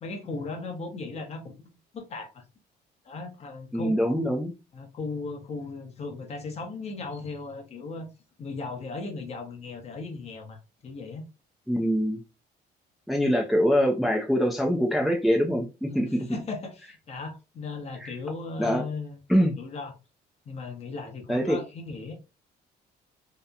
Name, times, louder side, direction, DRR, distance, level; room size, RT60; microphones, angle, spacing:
voice 1, 0.0-1.6 1.9-2.4 3.0-4.2 4.7-8.1 8.4-11.2 15.9-19.2 19.6-19.9 20.5-22.2, left 3 dB, 40° left, 0.7 m, -37 dB
voice 2, 3.7-4.5 11.7-12.2 13.1-16.3 18.0-18.1 18.6-18.8 19.3-19.5 21.3-21.6, equal, ahead, 0.4 m, -24 dB
2.8 x 2.0 x 2.3 m
cardioid pair, 110°, 17 cm